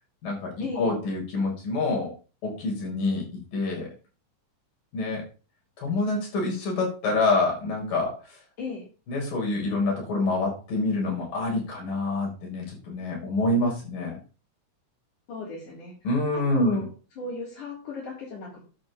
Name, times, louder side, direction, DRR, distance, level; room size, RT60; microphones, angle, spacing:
voice 1, 0.2-2.2 2.4-3.3 3.5-3.9 4.9-5.2 5.8-8.4 9.1-14.2 16.0-16.8, left 2 dB, 85° left, -1 dB, 6.4 m, -27 dB
voice 2, 15.3-15.9 16.5-16.9 17.2-18.6, left 3 dB, 65° left, -6 dB, 5.2 m, -36 dB
11.5 x 4.9 x 6.6 m, 0.34 s
omnidirectional pair, 3.8 m